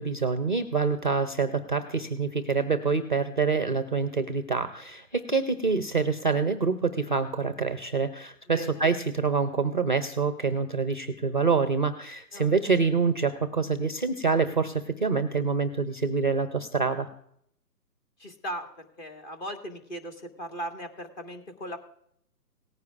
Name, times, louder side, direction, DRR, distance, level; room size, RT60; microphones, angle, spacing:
voice 1, 0.0-17.1, right 4 dB, 30° right, 9 dB, 0.5 m, -26 dB
voice 2, 18.2-21.8, equal, 30° left, 5 dB, 1.5 m, -38 dB
18.5 x 9.5 x 2.4 m, 0.69 s
hypercardioid pair, 150°, 50 cm